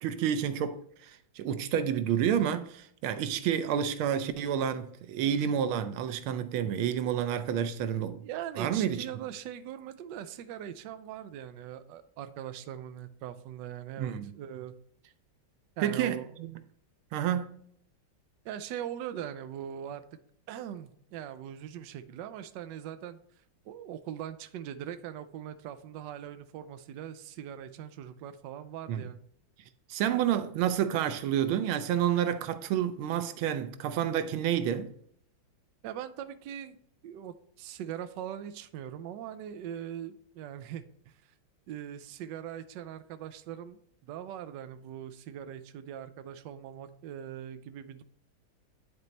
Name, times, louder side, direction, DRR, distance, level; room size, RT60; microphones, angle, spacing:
voice 1, 0.0-8.2 8.6-9.1 14.0-14.3 15.8-16.5 17.1-17.5 28.9-29.1 29.9-34.9, right 9 dB, 90° right, 1.5 m, -29 dB
voice 2, 8.2-14.7 15.8-16.3 18.4-20.0 20.5-23.2 23.7-29.2 35.8-41.1 41.7-48.0, right 10 dB, 75° right, 1.1 m, -41 dB
10.5 x 4.0 x 3.2 m
omnidirectional pair, 2.2 m